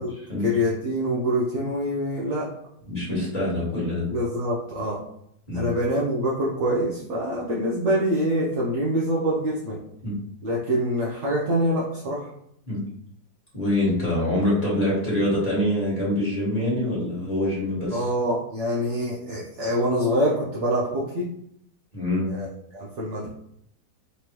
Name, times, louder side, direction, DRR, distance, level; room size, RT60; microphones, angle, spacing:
voice 1, 0.4-2.5 4.1-5.0 5.5-9.8 10.4-12.3 17.9-21.3 22.3-22.5 22.7-23.3, equal, 55° right, -5 dB, 0.8 m, -25 dB
voice 2, 2.9-4.1 5.5-5.7 10.0-10.1 12.7-12.8 13.5-18.0 21.9-22.2, left 1 dB, 20° left, -7 dB, 1.8 m, -25 dB
4.1 x 3.3 x 3.0 m, 0.72 s
omnidirectional pair, 1.9 m